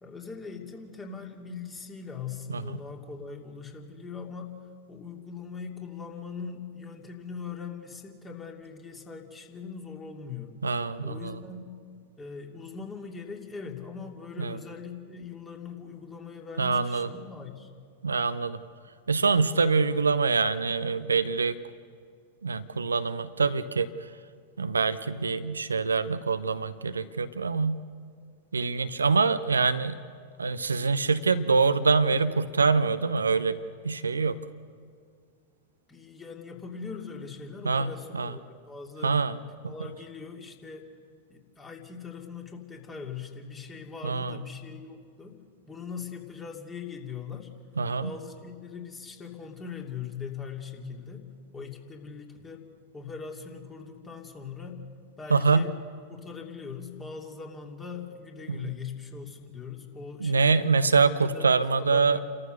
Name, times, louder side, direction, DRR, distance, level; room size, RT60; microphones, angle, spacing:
voice 1, 0.0-4.5 4.9-10.6 11.0-11.7 12.2-17.7 35.9-39.1 39.6-40.9 41.3-45.4 45.7-47.5 48.0-51.3 51.5-52.6 52.9-54.8 55.2-55.7 56.1-60.6 61.3-62.2, left 5 dB, 20° left, 2 dB, 2.8 m, -41 dB
voice 2, 10.6-11.4 14.4-14.6 16.6-17.1 18.0-18.6 19.1-21.6 22.4-23.9 24.6-27.8 28.5-30.0 30.4-33.6 33.8-34.4 37.6-38.3 39.0-39.4 39.6-39.7 44.0-44.4 47.8-48.1 55.3-55.7 58.5-58.7 60.2-62.2, right 4 dB, 75° right, 12 dB, 0.7 m, -25 dB
29.5 x 14.0 x 6.6 m, 2.1 s
figure-of-eight pair, 90°, 0 cm